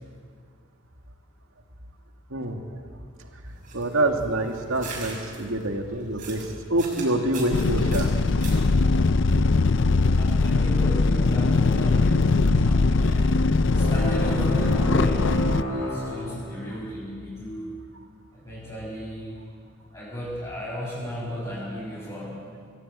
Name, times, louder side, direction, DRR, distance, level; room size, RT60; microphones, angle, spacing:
voice 1, 2.3-2.6 3.7-8.1 16.0-16.1, right 1 dB, 90° right, 3 dB, 2.2 m, -26 dB
sound 1, 3.4-8.8, right 3 dB, 40° right, 6.3 m, -41 dB
sound 2, 7.5-15.6, left 3 dB, 65° left, 0.6 m, -21 dB
voice 2, 10.2-13.2 13.7-17.7 18.3-19.4 19.9-22.4, equal, 20° left, -11 dB, 7.6 m, -35 dB
sound 3, 13.6-17.0, left 1 dB, 80° left, 5.5 m, -30 dB
24.0 x 15.0 x 8.9 m, 2.2 s
head